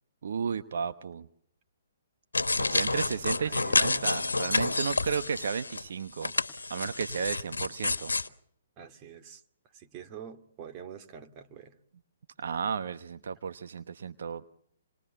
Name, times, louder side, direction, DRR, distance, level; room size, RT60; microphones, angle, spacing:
voice 1, 0.2-1.3 2.5-6.3 6.7-8.1 12.4-14.5, right 6 dB, 65° right, 1.0 m, -33 dB
sound 1, 2.3-5.8 6.2-8.3, left 3 dB, 90° left, 1.4 m, -29 dB
voice 2, 3.3-4.1 8.8-9.4 9.7-11.8, right 7 dB, 30° right, 2.3 m, -46 dB
27.5 x 21.0 x 7.0 m
hypercardioid pair, 130°, 0 cm